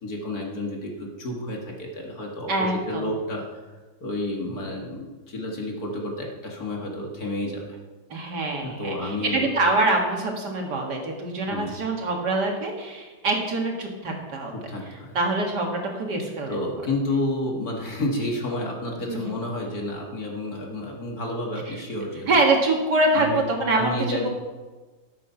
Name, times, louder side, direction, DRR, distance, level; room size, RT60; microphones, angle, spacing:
voice 1, 0.0-3.6 4.0-7.8 8.6-9.5 11.5-11.7 14.5-15.2 16.5-22.4 23.1-23.4 23.7-24.3, left 1 dB, 50° left, -1 dB, 2.4 m, -30 dB
voice 2, 2.5-3.0 8.1-14.5 15.1-16.6 19.1-19.2 22.3-24.3, right 2 dB, 60° right, 1 dB, 2.3 m, -24 dB
13.5 x 7.8 x 5.8 m, 1.3 s
omnidirectional pair, 2.1 m